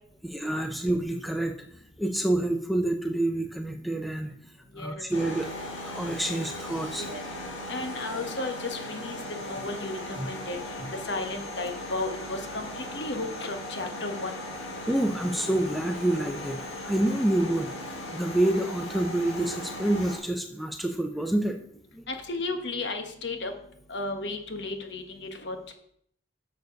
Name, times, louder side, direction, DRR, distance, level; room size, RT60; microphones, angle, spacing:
voice 1, 0.2-1.6 2.0-4.3 4.8-5.5 5.8-7.1 10.2-10.3 14.8-16.6 16.8-17.7 18.1-21.6 21.9-22.1, right 1 dB, ahead, 4 dB, 0.5 m, -27 dB
voice 2, 4.7-5.0 7.0-7.2 7.7-9.2 9.4-10.6 11.0-14.3 22.1-23.5 23.9-25.7, left 2 dB, 65° left, 5 dB, 1.2 m, -34 dB
sound 1, 5.1-20.2, left 1 dB, 90° left, 1.7 m, -38 dB
7.0 x 6.5 x 5.3 m, 0.68 s
head